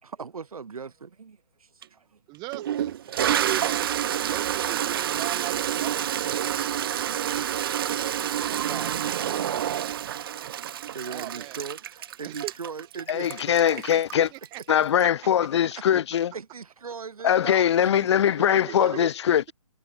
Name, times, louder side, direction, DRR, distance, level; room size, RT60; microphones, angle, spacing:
voice 1, 0.0-2.2 3.1-3.5 7.3-9.8 10.9-13.5 13.7-14.0 15.7-15.8 16.1-19.1, right 5 dB, 75° right, 2.6 m, -41 dB
Toilet flush, 1.8-1.9 2.5-15.0, right 10 dB, 40° right, 0.4 m, -28 dB
voice 2, 2.3-3.0 3.2-4.0 4.3-6.1 11.0-11.6 12.2-12.5 13.6-13.8 14.1-15.1 18.7-19.1, right 25 dB, 20° right, 2.4 m, -38 dB
voice 3, 13.1-14.3 14.7-16.3 17.2-19.5, left 9 dB, 50° left, 1.5 m, -22 dB
hypercardioid pair, 145°, 19 cm